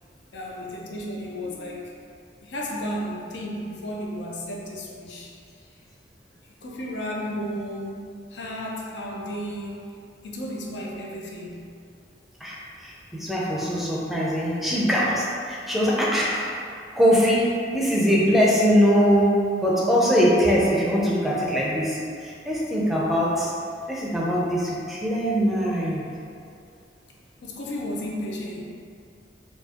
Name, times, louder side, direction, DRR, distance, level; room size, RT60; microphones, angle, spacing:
voice 1, 0.3-1.9 2.4-5.3 6.6-9.9 10.2-11.6 27.4-28.6, equal, 75° left, -2 dB, 0.6 m, -33 dB
voice 2, 12.4-16.5 17.0-23.5 23.9-26.1, equal, ahead, -5 dB, 0.5 m, -22 dB
4.5 x 2.4 x 2.8 m, 2.3 s
head